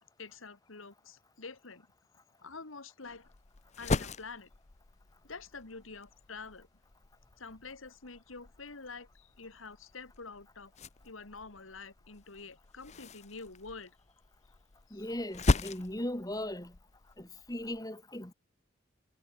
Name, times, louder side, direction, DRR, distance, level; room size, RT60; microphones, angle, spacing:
voice 1, 0.2-1.9 2.4-3.3 3.8-4.5 5.2-6.7 7.4-10.7 11.0-13.9 14.9-15.1, left 4 dB, 90° left, 2.1 m, -47 dB
sound 1, 3.0-17.8, left 2 dB, 35° left, 0.7 m, -38 dB
voice 2, 14.9-16.7 17.2-18.3, left 1 dB, 20° left, 2.6 m, -38 dB
head